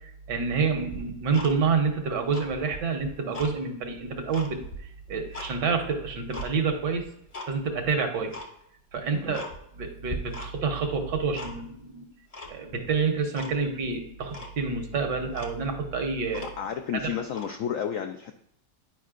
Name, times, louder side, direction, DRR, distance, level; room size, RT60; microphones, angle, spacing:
voice 1, 0.3-4.6 5.1-7.0 7.5-8.4 8.9-9.4 9.8-12.1 12.5-16.5 16.9-17.1, right 5 dB, 75° right, 5 dB, 1.6 m, -28 dB
Tick-tock, 0.9-1.9 2.2-3.6 4.0-5.5 5.9-6.5 7.0-7.5 7.8-7.9 8.3-8.5 8.9-9.0 9.3-9.8 10.1-10.7 11.0-11.8 12.3-12.9 13.3-13.5 13.9-14.0 14.3-14.6 15.0-15.1 15.3-16.8 17.3-17.5, left 1 dB, 35° left, 0.6 m, -40 dB
voice 2, 16.6-18.3, left 8 dB, 85° left, 5 dB, 0.7 m, -32 dB
10.0 x 5.1 x 2.4 m, 0.74 s
omnidirectional pair, 1.9 m